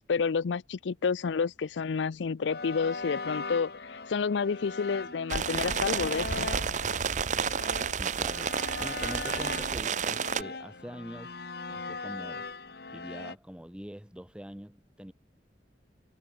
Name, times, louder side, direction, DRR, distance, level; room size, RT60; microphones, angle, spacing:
voice 1, 0.1-6.5, left 5 dB, 85° left, 0.5 m, -30 dB
sound 1, 2.4-13.4, left 3 dB, 60° left, 1.8 m, -40 dB
sound 2, 5.1-6.6 8.3-10.2, right 1 dB, 60° right, 1.6 m, -49 dB
sound 3, 5.3-10.4, right 6 dB, 45° right, 0.7 m, -31 dB
voice 2, 7.9-11.4 11.7-12.5 12.9-15.1, equal, 5° right, 1.3 m, -44 dB
head